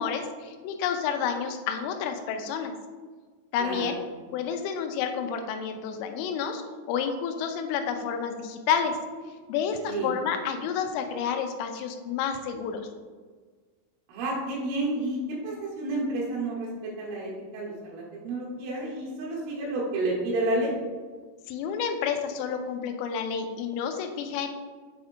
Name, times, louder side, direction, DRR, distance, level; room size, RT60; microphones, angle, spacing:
voice 1, 0.0-2.7 3.5-4.0 4.3-6.6 6.9-9.0 9.5-12.9 21.5-24.5, left 7 dB, 90° left, 6 dB, 3.2 m, -30 dB
voice 2, 3.6-4.0 9.9-10.1 14.1-15.2 15.4-16.7 17.0-20.7, right 2 dB, 80° right, -6 dB, 3.9 m, -30 dB
7.9 x 5.0 x 2.7 m, 1.5 s
omnidirectional pair, 5.7 m